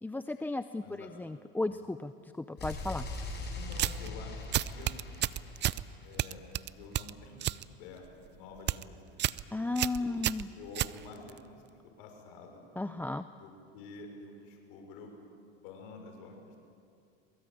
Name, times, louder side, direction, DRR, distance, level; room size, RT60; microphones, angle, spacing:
voice 1, 0.0-3.1 9.5-10.5 12.8-13.3, left 2 dB, 5° left, 10 dB, 0.5 m, -35 dB
sound 1, 2.6-6.4, left 2 dB, 35° left, 7.8 m, -41 dB
voice 2, 3.5-5.3 6.0-6.4 6.7-9.3 10.0-10.2 10.6-12.6 13.4-15.1 15.5-16.6, left 4 dB, 75° left, 2 dB, 5.9 m, -49 dB
sound 2, 3.7-4.1 4.5-5.8 6.2-7.6 8.0-8.3 8.6-8.8 9.2-9.4 9.8-11.4, right 13 dB, 40° right, 0.6 m, -31 dB
22.5 x 22.5 x 8.8 m, 2.4 s
supercardioid pair, 105°, 29 cm